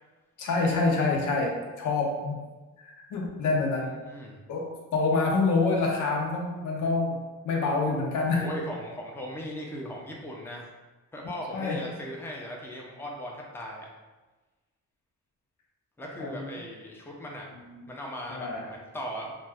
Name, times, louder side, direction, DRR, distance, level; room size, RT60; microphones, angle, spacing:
voice 1, 0.4-2.4 2.8-3.9 4.5-8.5 11.5-11.9 16.2-16.5 17.6-17.8 18.3-18.7, left 3 dB, 80° left, -1 dB, 0.7 m, -27 dB
voice 2, 4.0-4.4 8.3-10.7 11.1-13.9 16.0-17.5 17.9-19.3, equal, 10° left, -2 dB, 0.6 m, -38 dB
2.6 x 2.3 x 3.3 m, 1.2 s
cardioid pair, 90°, 30 cm